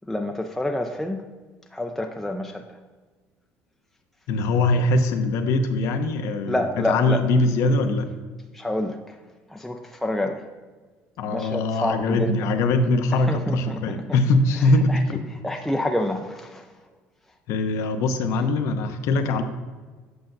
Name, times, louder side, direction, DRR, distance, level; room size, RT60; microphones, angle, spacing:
voice 1, 0.1-1.2 1.7-2.6 6.5-7.2 8.5-9.2 9.5-10.4 11.3-12.4 13.3-14.0 14.9-15.0 15.4-16.6, left 1 dB, 5° left, 2 dB, 0.4 m, -27 dB
voice 2, 4.3-8.1 11.2-15.2 17.5-19.4, left 2 dB, 70° left, 7 dB, 0.7 m, -22 dB
7.9 x 5.7 x 2.6 m, 1.4 s
cardioid pair, 105°, 5 cm